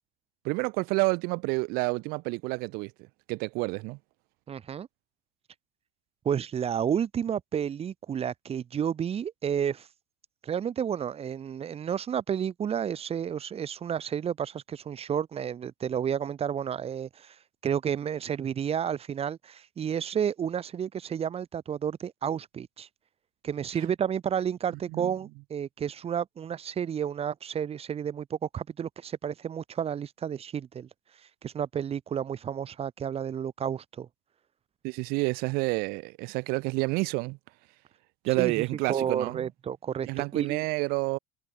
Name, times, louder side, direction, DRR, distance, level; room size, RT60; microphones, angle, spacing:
voice 1, 0.4-2.9 3.3-4.0 24.9-25.1 34.8-37.4 38.2-39.4 40.1-41.2, right 27 dB, 65° right, 1.5 m, -29 dB
voice 2, 4.5-4.9 6.2-9.9 10.4-17.4 17.6-22.9 23.4-30.9 31.4-34.1 38.4-40.6, right 8 dB, 35° right, 2.6 m, -31 dB
hypercardioid pair, 85°, 16 cm